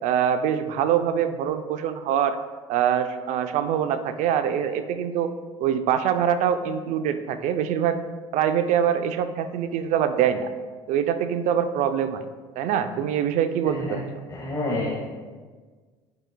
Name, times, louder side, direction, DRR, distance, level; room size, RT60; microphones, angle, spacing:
voice 1, 0.0-2.4 2.7-5.3 5.6-8.0 8.3-10.5 10.9-12.2 12.6-13.8, right 9 dB, 65° right, 10 dB, 0.6 m, -24 dB
voice 2, 13.6-13.9 14.3-14.9, left 2 dB, 25° left, -6 dB, 1.7 m, -29 dB
11.0 x 5.1 x 2.3 m, 1.4 s
hypercardioid pair, 75°, 14 cm